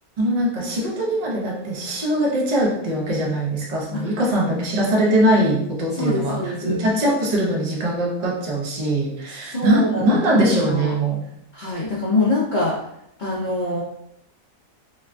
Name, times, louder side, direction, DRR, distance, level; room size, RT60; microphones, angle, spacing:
voice 1, 0.2-11.2, right 1 dB, 80° right, -2 dB, 0.3 m, -21 dB
voice 2, 5.9-6.8 9.4-10.2 10.7-10.9 11.5-12.7 13.2-13.8, left 2 dB, 75° left, -6 dB, 0.4 m, -23 dB
3.0 x 2.2 x 2.4 m, 0.76 s
omnidirectional pair, 1.5 m